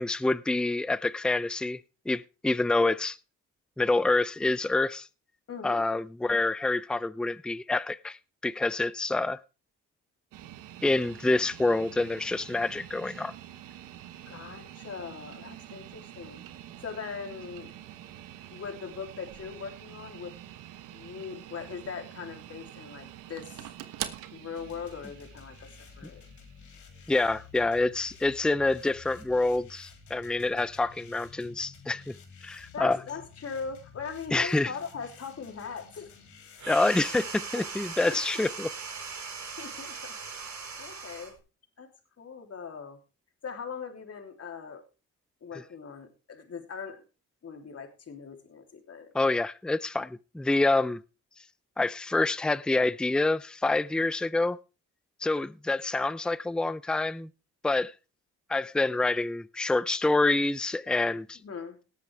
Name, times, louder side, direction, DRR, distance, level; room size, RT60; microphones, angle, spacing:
voice 1, 0.0-1.8 2.1-3.2 3.8-5.1 5.6-8.2 8.4-9.4 10.8-13.3 27.1-32.1 32.4-33.0 34.3-34.7 36.7-38.7 49.1-51.0 51.8-54.6 55.2-57.3 57.6-57.9 58.5-61.4, left 2 dB, 5° left, 0.5 m, -27 dB
voice 2, 5.5-5.9 14.2-16.4 16.8-17.7 18.5-20.3 20.9-23.7 24.3-26.2 32.7-36.1 38.1-38.4 39.6-40.1 40.8-41.3 41.8-41.9 42.2-43.0 43.4-44.8 45.4-47.0 47.4-49.1 61.4-61.8, left 6 dB, 50° left, 3.3 m, -40 dB
sound 1, 10.3-28.4, right 12 dB, 85° right, 1.2 m, -46 dB
sound 2, 24.5-36.7, left 5 dB, 65° left, 3.0 m, -52 dB
sound 3, 36.6-41.4, right 5 dB, 65° right, 4.7 m, -39 dB
18.5 x 8.3 x 3.5 m
supercardioid pair, 70°, 32 cm